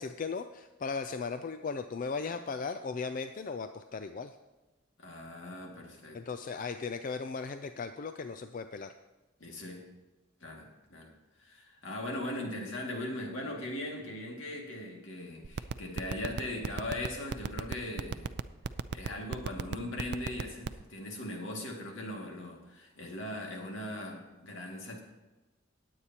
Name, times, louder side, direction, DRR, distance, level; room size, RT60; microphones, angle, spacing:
voice 1, 0.0-4.3 6.1-8.9, left 4 dB, 45° left, 9 dB, 0.4 m, -37 dB
voice 2, 5.0-6.2 9.4-9.9 10.4-11.1 11.4-18.3 18.9-25.0, left 1 dB, 75° left, 0 dB, 2.2 m, -39 dB
sound 1, 15.4-20.8, right 5 dB, 55° right, 0.4 m, -33 dB
18.5 x 8.3 x 2.9 m, 1.1 s
head